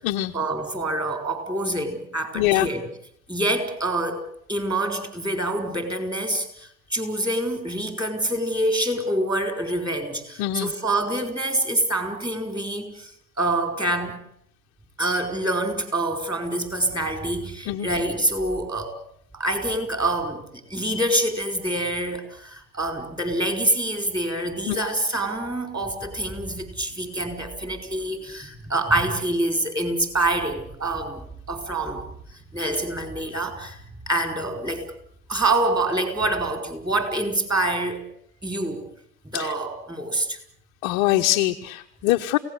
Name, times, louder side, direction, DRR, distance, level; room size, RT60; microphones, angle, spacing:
voice 1, 0.3-2.8 3.3-4.2 4.5-13.1 13.4-14.1 15.0-18.9 19.3-32.0 32.3-33.8 34.1-34.8 35.3-38.0 38.4-38.8 39.2-40.4, right 1 dB, 10° right, 6 dB, 4.6 m, -26 dB
voice 2, 2.3-2.7 10.4-10.7 17.7-17.9 24.7-24.8 39.3-39.5 40.8-42.4, left 15 dB, 30° left, 3 dB, 0.9 m, -23 dB
29.0 x 17.5 x 8.1 m, 0.70 s
hypercardioid pair, 125°, 50 cm